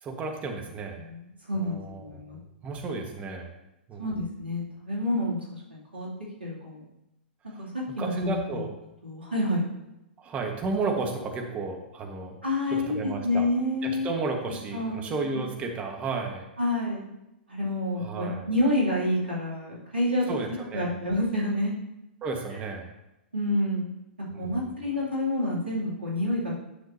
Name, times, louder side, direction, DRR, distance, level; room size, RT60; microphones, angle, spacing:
voice 1, 0.0-1.0 1.5-3.5 3.9-4.1 7.5-7.6 7.9-8.7 10.2-12.4 12.7-13.5 13.8-16.5 18.0-18.5 20.3-21.0 22.2-22.9 24.3-24.7, right 3 dB, 25° right, 2 dB, 1.3 m, -33 dB
voice 2, 1.0-2.4 4.0-6.1 6.4-6.8 7.6-8.7 9.0-9.7 12.4-13.0 13.2-14.1 14.7-15.1 16.6-17.0 17.5-21.7 23.3-23.9 24.4-26.5, left 1 dB, 80° right, -5 dB, 2.7 m, -28 dB
10.0 x 5.9 x 2.7 m, 0.91 s
figure-of-eight pair, 105°, 6 cm